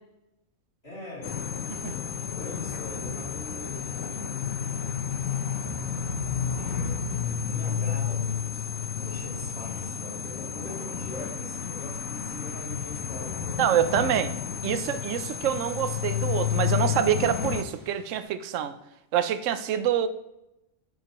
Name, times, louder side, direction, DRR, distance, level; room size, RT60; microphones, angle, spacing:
voice 1, 0.8-1.7 2.3-4.3 6.7-14.0, left 1 dB, 50° left, 3.3 m, -41 dB
sound 1, 1.2-17.6, left 8 dB, 85° left, 1.2 m, -31 dB
sound 2, 2.6-18.2, right 3 dB, 20° right, 2.4 m, -50 dB
voice 2, 13.6-14.3 14.6-18.7 19.1-20.1, right 10 dB, 70° right, 1.0 m, -26 dB
10.0 x 7.6 x 3.0 m
omnidirectional pair, 1.4 m